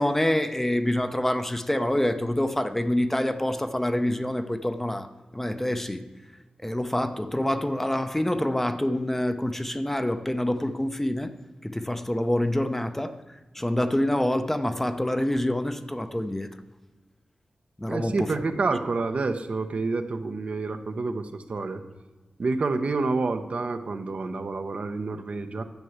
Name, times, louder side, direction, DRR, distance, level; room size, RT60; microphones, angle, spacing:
voice 1, 0.0-6.0 6.6-11.3 11.6-16.5 17.8-18.3, left 1 dB, 10° left, 0.7 m, -26 dB
voice 2, 17.9-21.8 22.4-25.6, right 3 dB, 60° right, 0.9 m, -28 dB
11.0 x 6.9 x 7.9 m
wide cardioid pair, 70°, 2 cm